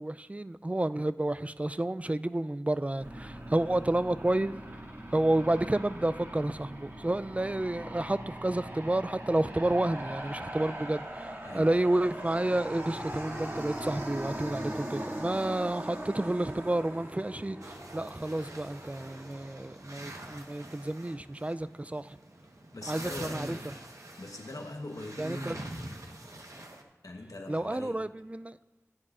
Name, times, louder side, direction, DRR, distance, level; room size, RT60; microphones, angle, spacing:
voice 1, 0.0-4.8 5.1-22.2 22.9-23.6 25.2-25.6 27.5-28.6, right 1 dB, 25° right, 0.4 m, -30 dB
Aircraft, 3.0-20.4, right 1 dB, 50° right, 2.3 m, -40 dB
sound 1, 17.6-26.8, right 1 dB, 65° right, 1.2 m, -46 dB
voice 2, 22.7-23.7 24.2-25.6 27.0-28.0, left 1 dB, 80° left, 1.1 m, -41 dB
15.0 x 9.9 x 2.5 m
wide cardioid pair, 45°, 6 cm